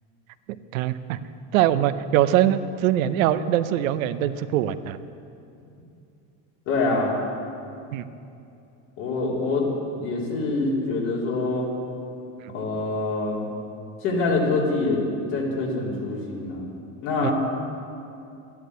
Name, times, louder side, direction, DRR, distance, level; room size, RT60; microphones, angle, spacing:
voice 1, 0.7-1.2 1.5-5.0 7.9-8.0 17.2-17.3, right 12 dB, 85° right, 12 dB, 0.8 m, -22 dB
voice 2, 6.7-7.2 9.0-9.7 10.0-11.7 12.5-13.5 14.0-16.7 17.0-17.3, left 3 dB, 75° left, -4 dB, 4.0 m, -25 dB
12.5 x 10.5 x 8.0 m, 2.6 s
supercardioid pair, 95°, 40 cm